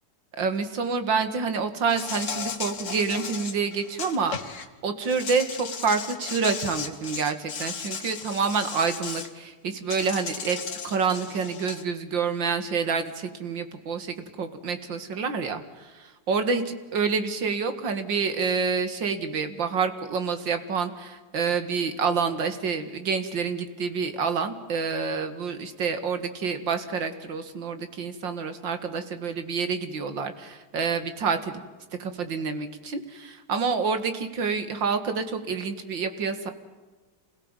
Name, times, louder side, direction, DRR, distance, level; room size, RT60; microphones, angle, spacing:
voice 1, 0.4-10.6 10.8-15.9 16.3-16.6 16.9-31.6 32.0-36.5, right 5 dB, 60° right, 9 dB, 2.6 m, -28 dB
Insect, 1.9-4.7 5.0-9.3 9.9-11.8, left 6 dB, 40° left, 1.5 m, -36 dB
27.0 x 17.0 x 9.0 m, 1.3 s
omnidirectional pair, 2.4 m